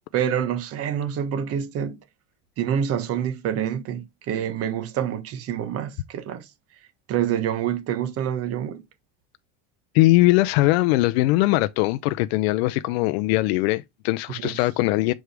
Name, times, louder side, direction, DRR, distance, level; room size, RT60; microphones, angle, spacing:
voice 1, 0.1-2.0 2.6-6.4 7.1-8.8 14.4-14.5, right 9 dB, 50° right, 1.3 m, -27 dB
voice 2, 9.9-15.1, left 19 dB, 80° left, 0.5 m, -20 dB
6.4 x 4.8 x 3.3 m
supercardioid pair, 130°, 31 cm